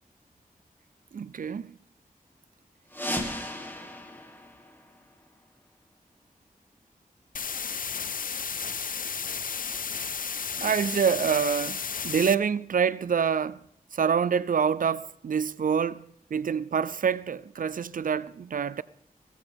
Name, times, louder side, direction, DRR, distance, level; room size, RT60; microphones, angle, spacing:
voice 1, 1.1-1.8 10.6-13.6 13.9-18.8, right 7 dB, 70° right, 0.4 m, -26 dB
sound 1, 2.9-5.5, left 1 dB, 15° left, 1.7 m, -36 dB
sound 2, 7.3-12.3, left 6 dB, 70° left, 0.5 m, -33 dB
15.0 x 15.0 x 3.5 m
wide cardioid pair, 85°, 15 cm